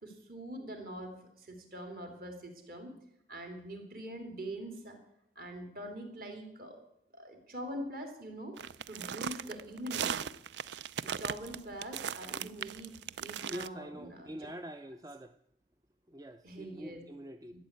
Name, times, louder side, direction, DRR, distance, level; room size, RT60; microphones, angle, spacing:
voice 1, 0.0-3.0 3.3-5.0 5.3-6.8 7.1-8.5 8.9-10.2 11.0-14.3 16.4-17.0, right 1 dB, 50° right, 4 dB, 2.9 m, -43 dB
sound 1, 8.6-13.7, right 8 dB, 75° right, 0.4 m, -38 dB
voice 2, 13.5-15.4 16.1-17.5, equal, 20° right, 8 dB, 0.4 m, -45 dB
13.5 x 8.4 x 8.2 m, 0.80 s
head